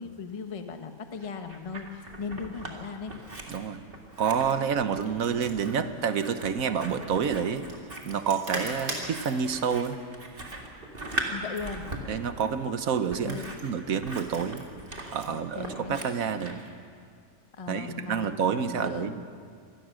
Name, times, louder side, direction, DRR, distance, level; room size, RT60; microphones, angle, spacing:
voice 1, 0.0-3.2 11.3-11.9 13.2-13.5 15.2-16.0 17.5-18.4 18.7-19.1, left 5 dB, 25° left, 6 dB, 0.9 m, -38 dB
Scissors, 1.2-2.8 3.1-16.7, right 2 dB, 35° right, 2.5 m, -40 dB
voice 2, 3.5-3.8 4.2-7.6 8.0-10.0 12.1-14.6 15.1-16.6 17.7-19.2, right 7 dB, 60° right, 10 dB, 1.4 m, -28 dB
sound 1, 4.7-15.9, right 1 dB, 75° right, 4.1 m, -42 dB
26.0 x 19.0 x 6.4 m, 2.3 s
omnidirectional pair, 1.8 m